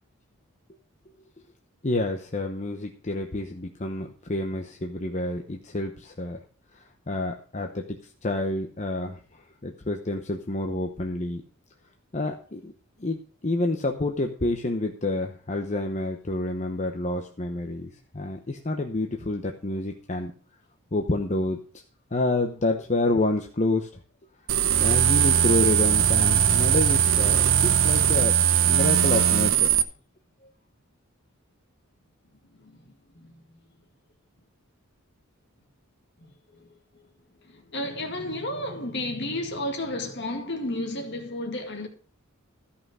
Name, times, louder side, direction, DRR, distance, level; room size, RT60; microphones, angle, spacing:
voice 1, 1.8-6.4 7.1-7.8 8.2-9.2 9.6-11.4 12.1-12.7 13.0-20.3 20.9-21.6 22.1-23.9 24.8-28.3 28.7-29.7, left 2 dB, 35° left, 0.8 m, -28 dB
sound 1, 24.5-29.8, right 9 dB, 65° right, 0.9 m, -20 dB
voice 2, 37.5-41.9, left 1 dB, 55° left, 2.1 m, -32 dB
13.5 x 5.7 x 6.3 m
head